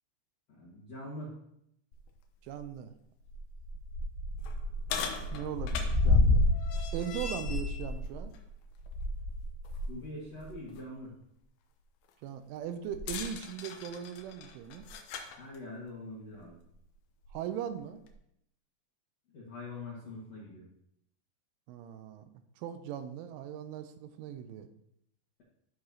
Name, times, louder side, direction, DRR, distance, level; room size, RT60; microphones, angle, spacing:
voice 1, 0.5-1.3 9.9-11.1 15.4-16.6 19.3-20.7, left 2 dB, 60° left, -8 dB, 1.7 m, -43 dB
sound 1, 1.9-2.0 2.5-2.6 3.2-9.9 10.3-10.5 12.9-15.3 16.3-16.4 17.2-17.3, left 2 dB, 85° left, 2.2 m, -30 dB
voice 2, 2.4-2.9 5.3-6.5 6.9-8.3 12.2-14.9 17.3-18.0 21.7-22.3 22.6-24.7, right 9 dB, 85° right, 9 dB, 3.0 m, -39 dB
13.5 x 4.8 x 2.8 m, 0.76 s
omnidirectional pair, 5.5 m